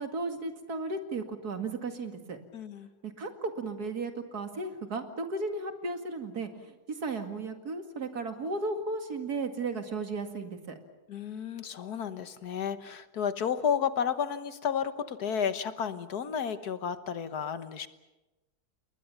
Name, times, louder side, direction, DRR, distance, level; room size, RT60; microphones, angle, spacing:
voice 1, 0.0-2.4 3.0-10.8, right 3 dB, 75° right, 6 dB, 2.7 m, -35 dB
voice 2, 2.5-2.9 11.1-17.9, left 7 dB, 75° left, 11 dB, 1.7 m, -32 dB
29.5 x 21.0 x 7.1 m, 1.0 s
omnidirectional pair, 1.7 m